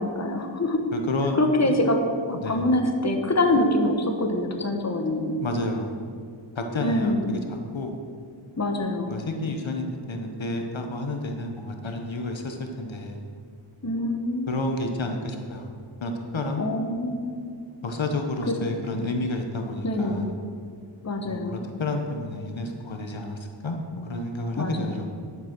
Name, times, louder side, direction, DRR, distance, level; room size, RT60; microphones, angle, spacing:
voice 1, 0.0-0.8 1.4-2.0 2.3-5.4 6.8-7.3 8.6-9.2 13.8-14.6 16.6-17.4 18.5-18.6 19.8-20.2 21.0-21.7 24.6-24.9, left 1 dB, 35° left, 3 dB, 1.3 m, -25 dB
voice 2, 0.9-1.7 2.3-2.7 5.4-5.9 6.5-7.4 7.7-7.9 9.1-13.2 14.5-15.7 16.0-16.6 17.8-20.3 21.2-25.1, left 2 dB, 65° left, 4 dB, 1.2 m, -30 dB
11.5 x 7.3 x 6.1 m, 2.2 s
wide cardioid pair, 70°, 49 cm